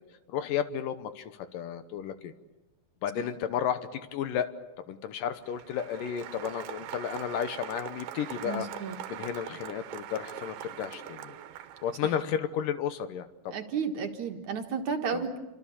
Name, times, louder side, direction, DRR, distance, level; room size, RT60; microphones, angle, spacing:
voice 1, 0.3-2.3 3.0-4.5 4.9-8.7 9.1-11.4 11.8-13.5 15.1-15.3, left 9 dB, 70° left, 11 dB, 2.5 m, -33 dB
Applause, 5.3-12.2, right 11 dB, 90° right, 3.1 m, -42 dB
voice 2, 8.4-9.0 13.5-15.4, right 5 dB, 60° right, 4 dB, 2.6 m, -32 dB
28.5 x 25.5 x 7.2 m, 1.1 s
omnidirectional pair, 4.3 m